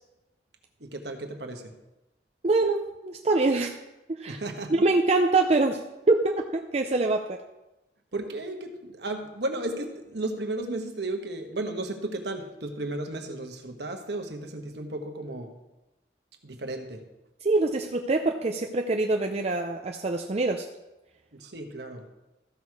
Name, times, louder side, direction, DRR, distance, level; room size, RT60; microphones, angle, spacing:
voice 1, 0.8-1.7 4.3-4.9 8.1-15.5 16.4-17.0 21.3-22.0, right 2 dB, 65° right, 5 dB, 1.3 m, -34 dB
voice 2, 2.4-3.7 4.1-4.4 4.7-7.4 17.4-20.7, right 2 dB, 35° right, 3 dB, 0.5 m, -24 dB
14.0 x 6.2 x 4.8 m, 0.99 s
head